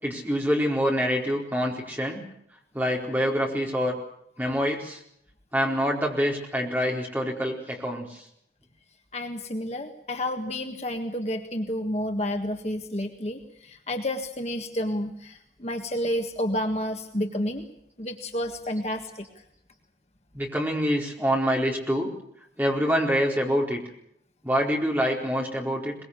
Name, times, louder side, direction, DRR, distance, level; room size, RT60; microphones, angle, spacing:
voice 1, 0.0-2.2 2.7-4.0 4.4-5.0 5.5-8.2 15.7-15.8 20.3-22.1 22.6-23.8 24.4-25.9, equal, 10° right, 0 dB, 4.3 m, -26 dB
voice 2, 9.1-17.6 18.0-19.3, left 1 dB, 40° left, 5 dB, 1.7 m, -30 dB
22.5 x 21.0 x 8.3 m, 0.71 s
head